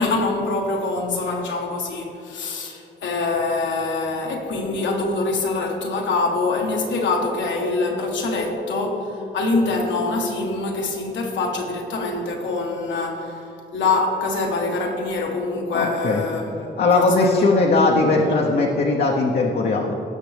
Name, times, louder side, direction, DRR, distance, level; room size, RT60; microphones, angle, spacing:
voice 1, 0.0-9.1 9.3-13.3 13.7-17.5 18.4-18.5, left 3 dB, 80° left, 1 dB, 1.4 m, -24 dB
voice 2, 15.7-16.2 16.8-19.9, left 3 dB, 55° left, -1 dB, 0.9 m, -19 dB
16.5 x 6.0 x 3.4 m, 2.8 s
cardioid pair, 110°, 19 cm